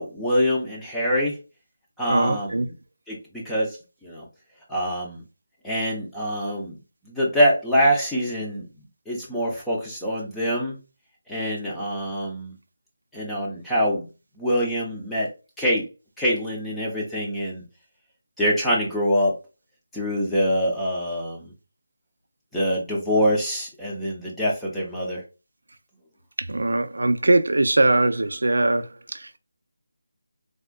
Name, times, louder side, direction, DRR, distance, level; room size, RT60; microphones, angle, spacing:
voice 1, 0.0-1.4 2.0-2.7 3.1-4.2 4.7-5.2 5.6-6.8 7.0-8.7 9.1-10.8 11.3-12.5 13.1-14.1 14.4-15.3 15.6-15.8 16.2-17.6 18.4-19.4 19.9-21.5 22.5-25.2, equal, 5° left, 0.6 m, -24 dB
voice 2, 2.1-2.7 26.4-29.4, right 2 dB, 90° right, 0.4 m, -21 dB
3.4 x 2.4 x 2.2 m
figure-of-eight pair, 170°, 0 cm